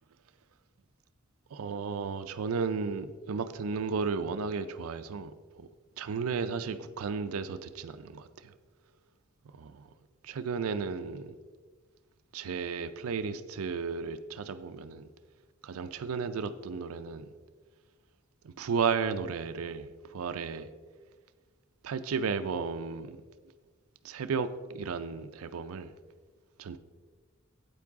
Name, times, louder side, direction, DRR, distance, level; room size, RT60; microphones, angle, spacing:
voice 1, 1.5-5.7 6.0-8.5 9.5-9.9 10.2-11.3 12.3-15.1 15.6-17.3 18.4-20.7 21.8-23.2 24.0-25.9 26.6-26.8, right 5 dB, 80° right, 0.4 m, -34 dB
8.5 x 8.4 x 3.6 m
head